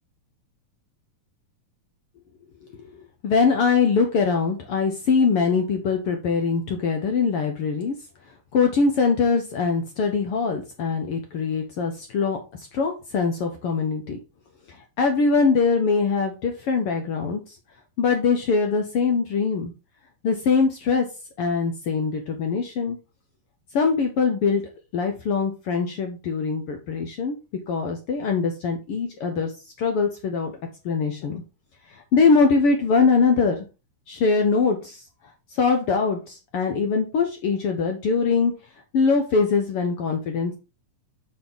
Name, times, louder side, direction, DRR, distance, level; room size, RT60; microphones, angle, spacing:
voice 1, 3.2-7.9 8.5-14.2 14.7-17.6 18.0-19.7 20.2-21.1 21.4-23.0 23.7-24.6 24.9-27.4 27.7-29.5 29.8-30.6 30.8-31.4 31.9-33.6 34.1-35.0 35.5-38.5 38.9-40.5, left 5 dB, 65° left, 4 dB, 1.4 m, -22 dB
6.6 x 5.8 x 3.7 m, 0.30 s
omnidirectional pair, 3.6 m